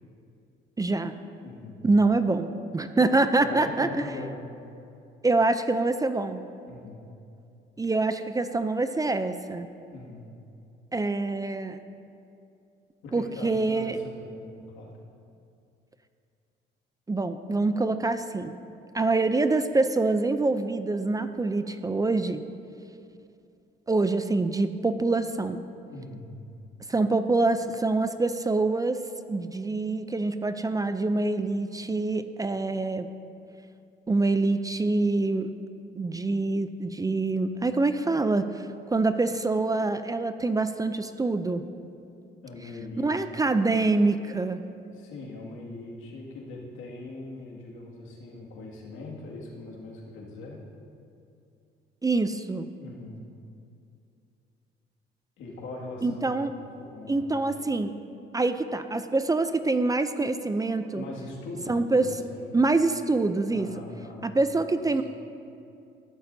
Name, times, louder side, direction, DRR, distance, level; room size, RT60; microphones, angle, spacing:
voice 1, 0.8-1.1 1.8-3.9 5.2-6.4 7.8-9.7 10.9-11.8 13.1-14.0 17.1-18.6 18.9-22.4 23.9-25.6 26.9-29.0 29.3-33.1 34.1-35.6 35.9-41.6 43.0-44.6 52.0-52.7 56.0-56.5 57.1-57.9 58.3-61.0 61.7-62.1 62.5-63.7 64.2-65.0, right 3 dB, 20° right, 10 dB, 0.5 m, -25 dB
voice 2, 1.4-1.8 3.4-4.4 6.7-7.0 9.9-10.2 13.0-14.9 25.9-26.3 42.4-43.1 43.4-43.5 44.9-50.6 52.8-53.2 55.4-57.4 60.9-62.5 63.5-64.3 64.6-65.0, left 2 dB, 85° left, -3 dB, 2.1 m, -41 dB
15.0 x 11.5 x 2.7 m, 2.5 s
cardioid pair, 90°, 20 cm